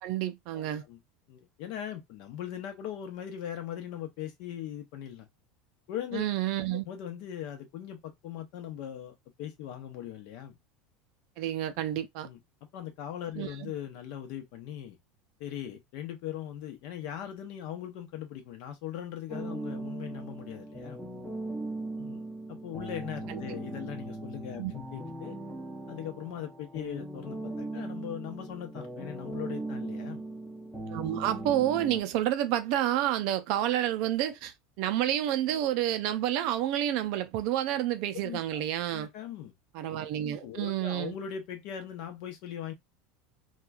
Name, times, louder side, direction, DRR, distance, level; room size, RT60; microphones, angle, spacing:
voice 1, 0.0-0.8 6.1-6.8 11.4-12.3 13.4-13.7 23.3-23.6 24.6-24.7 30.9-39.1 39.7-41.1, right 12 dB, 55° right, 0.4 m, -29 dB
voice 2, 0.5-1.0 1.3-5.3 5.9-6.3 6.8-10.6 12.2-12.4 12.7-15.0 15.4-21.0 22.0-25.4 25.9-30.3 38.2-38.6 38.9-39.5 40.4-42.7, left 10 dB, 55° left, 0.8 m, -40 dB
sound 1, 19.3-32.0, right 2 dB, ahead, 0.6 m, -39 dB
3.0 x 2.3 x 2.3 m
supercardioid pair, 160°, 0 cm